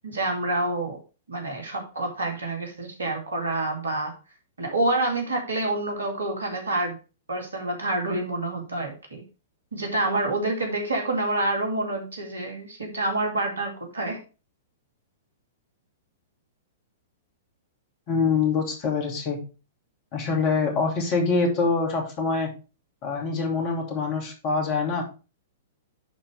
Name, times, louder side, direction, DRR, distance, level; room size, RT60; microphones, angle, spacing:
voice 1, 0.0-1.0 1.3-4.1 4.6-7.0 7.3-9.2 9.7-14.2, right 2 dB, 75° right, 2 dB, 2.3 m, -27 dB
voice 2, 18.1-19.4 20.1-22.5 23.0-25.0, left 4 dB, 35° left, 1 dB, 2.8 m, -25 dB
10.5 x 4.4 x 3.5 m, 0.32 s
figure-of-eight pair, 105°, 0 cm